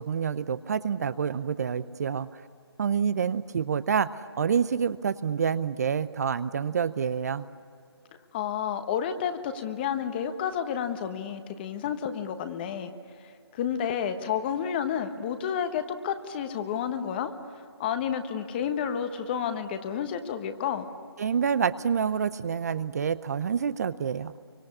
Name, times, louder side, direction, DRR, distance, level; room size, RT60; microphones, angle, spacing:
voice 1, 0.0-2.4 2.8-7.4 21.2-24.3, right 7 dB, 40° right, 14 dB, 0.6 m, -27 dB
voice 2, 8.3-12.9 13.2-17.3 17.8-20.9, left 8 dB, 20° left, 9 dB, 1.2 m, -30 dB
27.0 x 24.5 x 8.6 m, 2.4 s
figure-of-eight pair, 155°, 14 cm